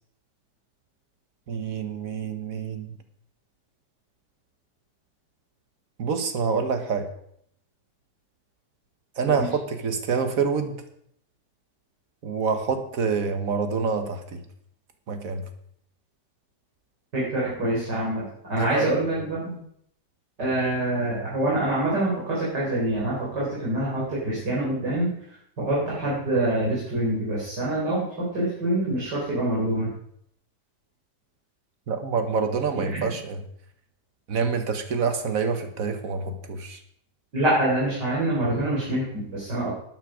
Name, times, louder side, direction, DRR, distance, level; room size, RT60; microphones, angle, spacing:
voice 1, 1.5-2.9 6.0-7.1 9.2-10.8 12.2-14.4 15.1-15.4 18.6-18.9 31.9-33.4 34.3-36.8, right 5 dB, 55° right, 7 dB, 1.6 m, -27 dB
voice 2, 17.1-18.2 18.5-19.6 20.4-25.1 25.6-29.9 32.7-33.1 37.3-39.7, right 1 dB, 80° right, -6 dB, 4.5 m, -25 dB
12.0 x 9.5 x 5.0 m, 0.70 s
omnidirectional pair, 1.8 m